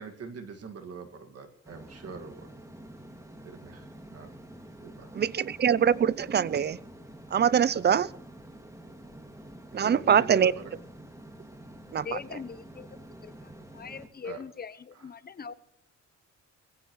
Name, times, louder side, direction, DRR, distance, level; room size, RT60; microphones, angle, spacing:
voice 1, 0.0-2.5 3.4-4.3 4.8-5.3 9.7-10.8 14.2-14.4 15.0-15.1, right 5 dB, 55° right, 2.1 m, -43 dB
sound 1, 1.6-14.1, right 1 dB, 10° right, 2.2 m, -48 dB
voice 2, 5.1-6.8 7.3-8.1 9.7-10.5 11.9-12.1, right 8 dB, 35° right, 0.5 m, -23 dB
voice 3, 11.9-12.9 13.2-15.5, left 6 dB, 30° left, 1.0 m, -41 dB
22.0 x 16.0 x 3.2 m
cardioid pair, 110°, 29 cm